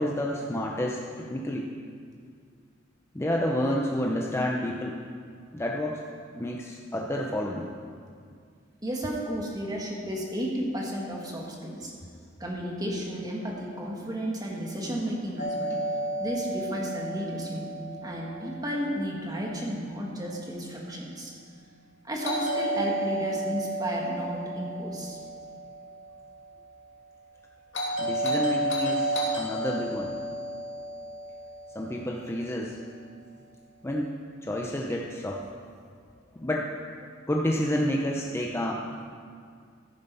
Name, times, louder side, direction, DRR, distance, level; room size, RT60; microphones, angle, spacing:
voice 1, 0.0-1.7 3.1-5.0 5.5-6.0 6.3-7.7 28.0-30.2 31.7-32.8 33.8-35.4 36.3-36.7 37.3-39.1, left 1 dB, 15° left, -1 dB, 0.7 m, -30 dB
voice 2, 8.8-11.9 12.4-15.7 16.2-17.7 18.0-21.3 22.0-25.2, equal, 20° right, -2 dB, 1.9 m, -33 dB
Doorbell, 15.4-19.4 22.2-26.5 27.7-32.1, right 1 dB, 70° left, 2.5 m, -32 dB
14.5 x 7.4 x 5.4 m, 2.1 s
head